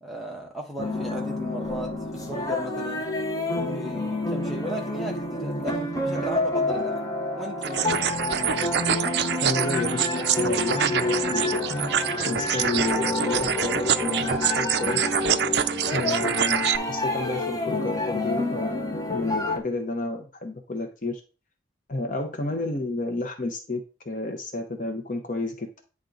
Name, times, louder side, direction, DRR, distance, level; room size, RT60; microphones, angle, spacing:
voice 1, 0.0-3.1 3.7-7.1 7.3-8.2, equal, ahead, 1.2 m, -36 dB
sound 1, 0.8-19.6, left 2 dB, 20° left, 1.0 m, -28 dB
sound 2, 7.6-16.8, right 9 dB, 60° right, 0.4 m, -26 dB
voice 2, 9.4-11.6 12.3-15.1 15.9-21.2 21.9-25.7, left 2 dB, 45° left, 0.8 m, -31 dB
9.1 x 3.6 x 3.9 m
head